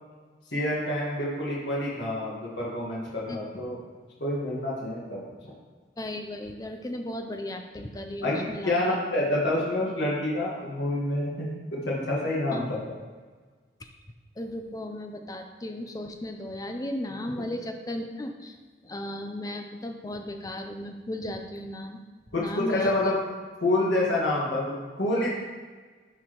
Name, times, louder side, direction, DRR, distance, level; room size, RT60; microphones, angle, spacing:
voice 1, 0.5-3.8 4.2-5.5 8.2-13.0 22.3-23.2 23.6-25.3, left 1 dB, 80° left, -5 dB, 1.6 m, -28 dB
voice 2, 3.3-3.6 6.0-8.7 12.5-12.8 14.4-18.6 18.8-22.0 22.4-23.1, left 1 dB, 20° left, 5 dB, 0.5 m, -35 dB
8.5 x 4.7 x 3.0 m, 1.4 s
head